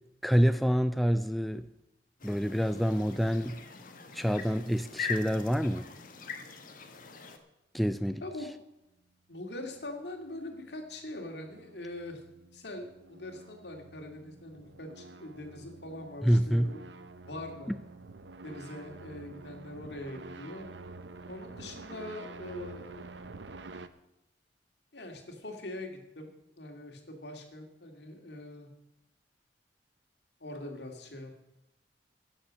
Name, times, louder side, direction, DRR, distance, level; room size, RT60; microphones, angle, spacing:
voice 1, 0.2-1.7 2.2-3.6 4.1-5.9 7.7-8.2 16.2-16.7, equal, ahead, 10 dB, 0.3 m, -27 dB
sound 1, 2.2-7.4, left 6 dB, 50° left, 1.3 m, -42 dB
voice 2, 8.2-8.5 9.3-12.2 12.5-16.8 17.3-17.7 18.4-20.7 21.3-23.0 24.9-28.7 30.4-31.4, left 1 dB, 70° left, 3 dB, 2.3 m, -43 dB
sound 2, 9.3-23.9, right 3 dB, 85° right, 0.8 m, -49 dB
16.0 x 7.2 x 6.3 m, 0.91 s
head